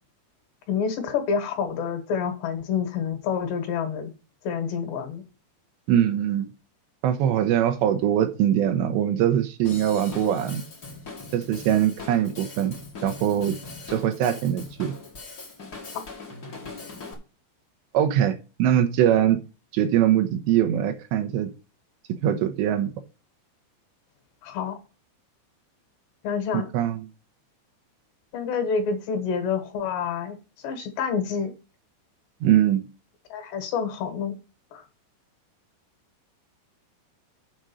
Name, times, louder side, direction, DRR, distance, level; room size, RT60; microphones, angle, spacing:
voice 1, 0.7-4.1 4.4-5.2 24.4-24.8 26.2-26.7 28.3-30.4 30.6-31.5 33.3-34.4 34.7-34.8, left 6 dB, 70° left, 3.4 m, -28 dB
voice 2, 5.9-6.5 7.0-10.6 11.3-12.8 13.0-13.6 13.9-14.9 17.9-18.3 18.6-19.4 19.7-21.5 22.2-22.9 26.5-27.1 32.4-32.8, right 10 dB, 80° right, 2.9 m, -22 dB
Drum kit / Drum, 9.6-17.1, left 3 dB, 55° left, 1.1 m, -41 dB
7.7 x 5.1 x 6.9 m
omnidirectional pair, 5.4 m